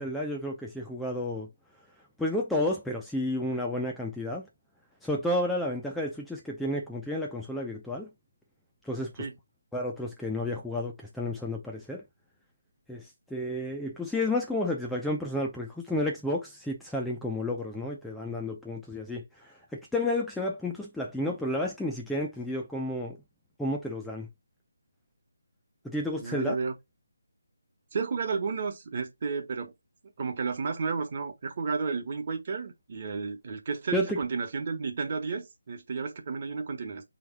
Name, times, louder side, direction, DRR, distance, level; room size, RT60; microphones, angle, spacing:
voice 1, 0.0-1.5 2.2-4.5 5.0-8.1 8.8-9.3 9.7-12.0 12.9-23.2 23.6-24.3 25.8-26.6 33.9-34.2, left 1 dB, ahead, 0.5 m, -31 dB
voice 2, 26.2-26.7 27.9-29.7 30.2-37.0, right 5 dB, 40° right, 1.2 m, -32 dB
3.5 x 3.2 x 4.5 m
figure-of-eight pair, 155°, 0 cm